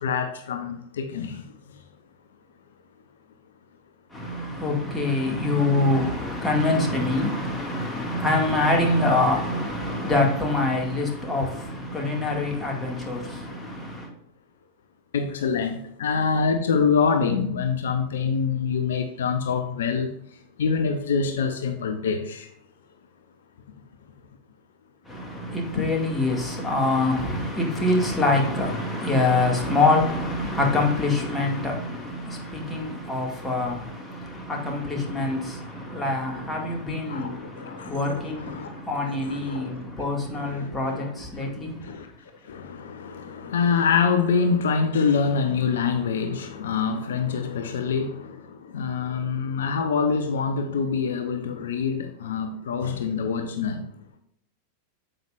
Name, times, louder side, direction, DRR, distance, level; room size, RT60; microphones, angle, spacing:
voice 1, 0.0-1.8 15.1-22.5 25.8-25.9 36.4-36.5 37.1-39.7 40.4-41.1 41.4-41.5 41.8-42.1 42.4-53.8, left 5 dB, 60° left, 0.7 m, -26 dB
voice 2, 4.1-14.1 25.1-41.9, left 2 dB, 10° left, 2.2 m, -25 dB
9.1 x 7.6 x 2.6 m
figure-of-eight pair, 90°, 0 cm